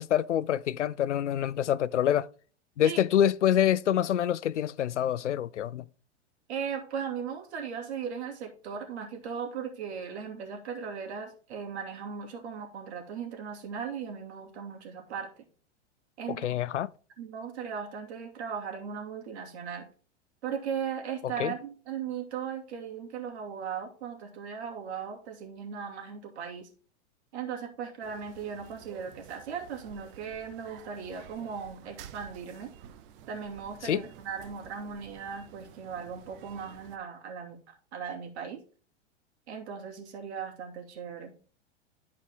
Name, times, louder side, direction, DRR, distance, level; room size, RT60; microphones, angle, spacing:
voice 1, 0.0-2.3 2.8-5.8 16.4-16.9 21.4-21.5 33.8-34.0, left 10 dB, 90° left, 0.5 m, -26 dB
voice 2, 6.5-15.4 16.2-16.6 17.2-19.9 20.4-26.7 27.3-32.7 33.3-38.6 39.5-41.3, right 7 dB, 70° right, 2.6 m, -38 dB
sound 1, 28.0-37.0, right 9 dB, 50° right, 0.9 m, -51 dB
11.5 x 4.8 x 3.6 m
hypercardioid pair, 110°, 35 cm